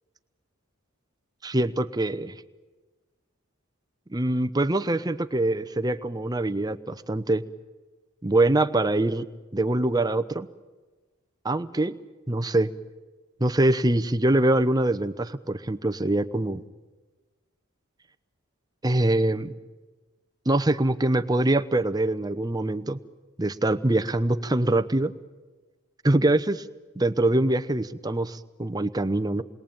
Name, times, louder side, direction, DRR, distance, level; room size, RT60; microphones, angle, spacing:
voice 1, 1.4-2.4 4.1-7.4 8.2-9.2 9.5-10.5 11.4-12.0 12.3-12.7 13.4-16.6 18.8-19.5 20.5-23.0 23.4-25.1 26.0-26.6 27.0-29.4, right 1 dB, 20° right, 10 dB, 0.8 m, -24 dB
28.0 x 21.5 x 8.8 m, 1.3 s
head